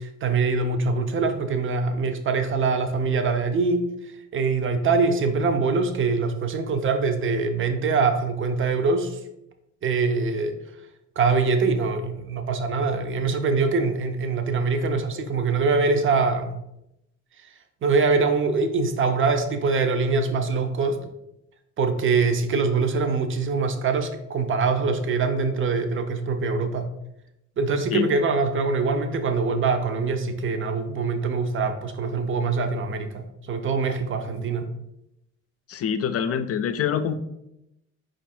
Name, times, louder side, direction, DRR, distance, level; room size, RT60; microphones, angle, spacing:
voice 1, 0.0-3.8 4.3-9.2 9.8-10.6 11.2-16.5 17.8-21.0 21.8-26.9 27.6-34.7, right 4 dB, 40° right, 7 dB, 0.6 m, -23 dB
voice 2, 35.7-37.2, left 8 dB, 50° left, 10 dB, 0.4 m, -25 dB
4.5 x 2.5 x 4.2 m, 0.84 s
cardioid pair, 90°, 30 cm